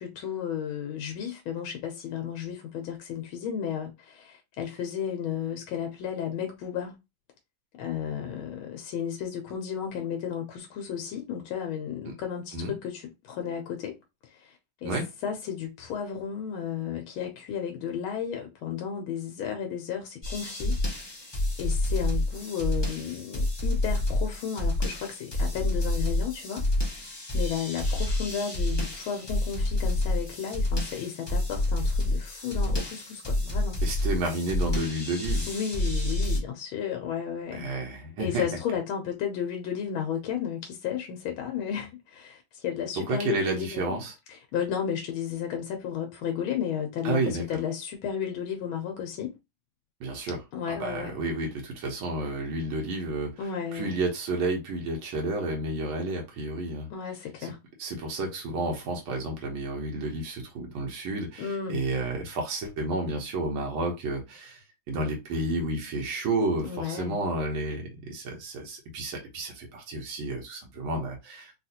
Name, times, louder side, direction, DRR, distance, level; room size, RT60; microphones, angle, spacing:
voice 1, 0.0-7.0 7.7-14.0 14.2-14.5 14.8-15.0 15.2-20.8 21.6-26.6 27.3-33.8 35.5-37.7 38.2-44.0 44.5-49.3 50.5-51.1 53.4-54.0 56.9-57.6 61.4-61.8 66.6-67.2, left 8 dB, 85° left, 1.4 m, -33 dB
sound 1, 20.2-36.4, left 1 dB, 30° left, 0.4 m, -28 dB
voice 2, 33.8-35.5 37.5-38.4 43.0-44.1 47.0-47.4 50.0-50.4 50.7-56.9 57.4-57.5 57.8-64.6 64.9-71.5, right 2 dB, 85° right, 1.7 m, -31 dB
3.8 x 2.4 x 2.7 m
omnidirectional pair, 2.2 m